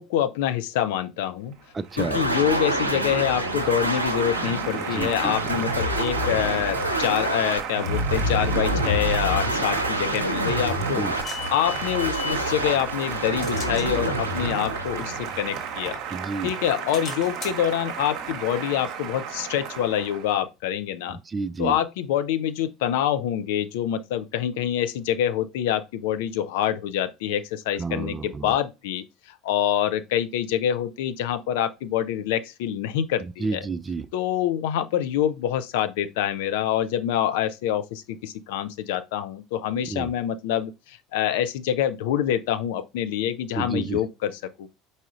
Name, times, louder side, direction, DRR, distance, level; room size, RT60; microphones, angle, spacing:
voice 1, 0.0-1.5 2.0-11.1 11.5-16.0 16.4-21.2 21.6-33.7 34.1-44.7, left 10 dB, 65° left, 0.5 m, -26 dB
Applause, 1.5-20.4, right 8 dB, 55° right, 0.8 m, -34 dB
voice 2, 1.7-2.2 4.7-5.3 10.8-11.1 16.1-16.5 21.1-21.8 27.8-28.5 33.2-34.1 39.9-40.1 43.6-44.0, right 4 dB, 25° right, 0.3 m, -31 dB
sound 1, 2.0-15.8, right 1 dB, 90° right, 0.6 m, -27 dB
Subway card swipe double beep and turnstile, 10.9-12.5 13.0-16.1 16.5-20.0, left 5 dB, 35° left, 1.6 m, -41 dB
4.7 x 4.1 x 2.4 m
figure-of-eight pair, 65°, 0 cm